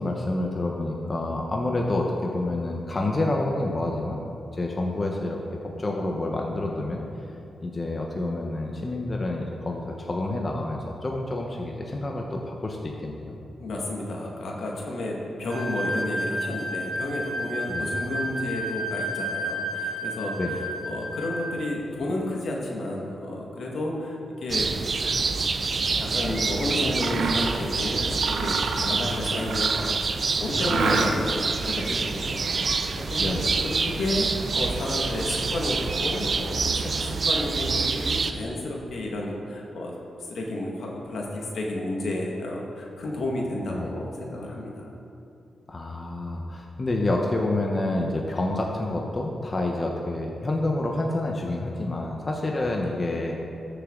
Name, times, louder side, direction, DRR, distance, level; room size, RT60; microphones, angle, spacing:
voice 1, 0.0-4.2 4.5-5.4 5.8-7.0 7.6-13.4 17.7-18.0 20.4-20.6 30.6-31.2 33.2-33.5 43.7-43.9 45.7-53.4, left 2 dB, 35° left, 0 dB, 1.0 m, -28 dB
voice 2, 13.6-24.7 26.0-44.9, left 1 dB, 75° left, -1 dB, 1.8 m, -31 dB
sound 1, 15.5-21.6, equal, 20° right, 2.0 m, -31 dB
sound 2, 24.5-38.3, right 4 dB, 50° right, 0.6 m, -27 dB
Mechanisms, 26.9-27.6 28.1-30.0 30.6-31.4, right 4 dB, 85° right, 0.8 m, -29 dB
13.5 x 6.8 x 3.9 m, 2.8 s
cardioid pair, 70°, 0 cm